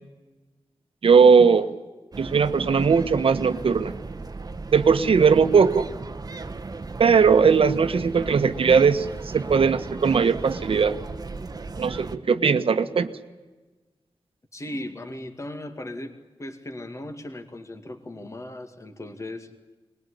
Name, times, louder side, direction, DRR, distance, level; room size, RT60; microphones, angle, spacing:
voice 1, 1.0-1.7 2.2-3.9 4.7-5.9 7.0-10.9 11.8-13.1, right 5 dB, 75° right, 10 dB, 1.3 m, -19 dB
sound 1, 2.1-12.2, right 3 dB, 40° right, 1.1 m, -36 dB
voice 2, 14.5-19.5, left 1 dB, 30° left, 6 dB, 2.2 m, -37 dB
22.5 x 20.5 x 9.9 m, 1.3 s
wide cardioid pair, 90°, 10 cm